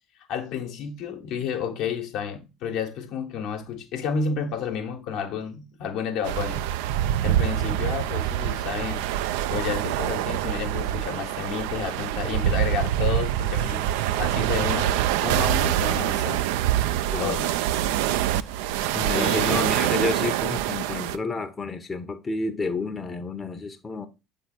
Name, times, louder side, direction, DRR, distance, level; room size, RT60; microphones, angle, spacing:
voice 1, 0.3-6.6 7.2-9.1 9.5-13.9 14.2-16.4 17.2-17.5 19.1-19.8, left 7 dB, 60° left, 1.0 m, -31 dB
sound 1, 6.2-21.2, right 12 dB, 70° right, 0.4 m, -25 dB
voice 2, 18.9-24.1, left 3 dB, 20° left, 0.7 m, -30 dB
7.5 x 3.6 x 4.3 m
figure-of-eight pair, 60°, 0 cm